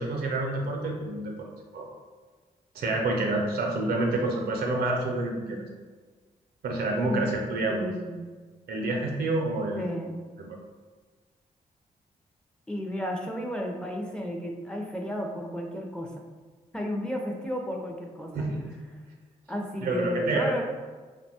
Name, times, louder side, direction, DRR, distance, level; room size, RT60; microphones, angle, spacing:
voice 1, 0.0-1.5 1.7-1.9 2.7-5.7 6.6-7.9 8.7-9.8 10.4-10.6 18.3-18.8 19.8-20.6, right 2 dB, 80° right, 0 dB, 0.5 m, -28 dB
voice 2, 7.6-8.2 9.8-10.2 12.7-16.2 16.7-18.3 19.5-20.6, equal, 5° left, 0 dB, 0.5 m, -33 dB
2.9 x 2.1 x 2.8 m, 1.4 s
supercardioid pair, 50°, 16 cm